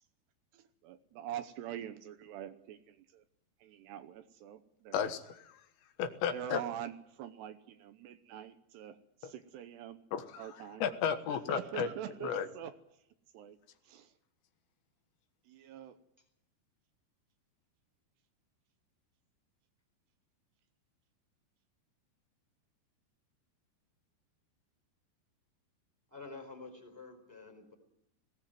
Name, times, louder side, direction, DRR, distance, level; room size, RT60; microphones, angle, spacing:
voice 1, 0.5-3.2 3.6-5.1 6.3-10.0 10.4-10.8 11.3-12.7 13.3-13.6 13.9-14.1 15.5-16.0, right 11 dB, 75° right, 10 dB, 2.9 m, -44 dB
voice 2, 4.9-5.7 6.0-6.6 9.2-9.3 10.1-11.9 12.2-12.5, left 8 dB, 75° left, 9 dB, 3.6 m, -34 dB
voice 3, 26.1-27.7, left 3 dB, 5° right, 4 dB, 3.5 m, -49 dB
20.0 x 18.0 x 9.2 m, 0.80 s
omnidirectional pair, 5.2 m